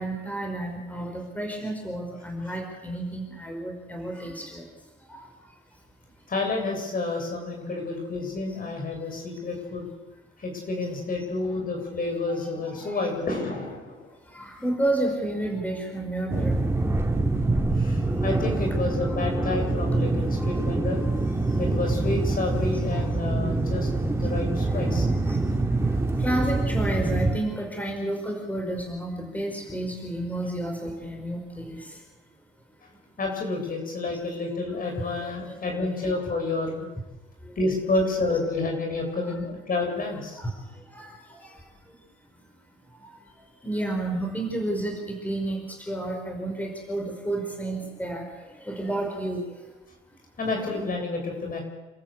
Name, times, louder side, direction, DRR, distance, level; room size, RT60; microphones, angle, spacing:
voice 1, 0.0-4.6 5.1-5.2 7.7-7.8 12.4-12.5 12.8-13.1 14.3-16.6 18.4-18.5 19.0-19.1 20.4-20.7 22.9-23.1 25.3-25.4 26.2-32.0 35.0-35.9 38.3-38.4 40.4-40.5 40.9-41.5 43.0-43.1 43.6-48.2 48.5-49.5 50.6-50.8, right 1 dB, 10° left, 2 dB, 5.5 m, -31 dB
voice 2, 6.3-9.9 10.4-14.1 17.8-21.0 21.5-25.1 33.2-36.9 37.6-40.4 50.4-51.6, left 3 dB, 45° left, 1 dB, 7.3 m, -29 dB
sound 1, 16.3-27.4, right 2 dB, 15° right, 2.6 m, -25 dB
28.5 x 14.0 x 8.4 m, 1.1 s
cardioid pair, 90°, 20 cm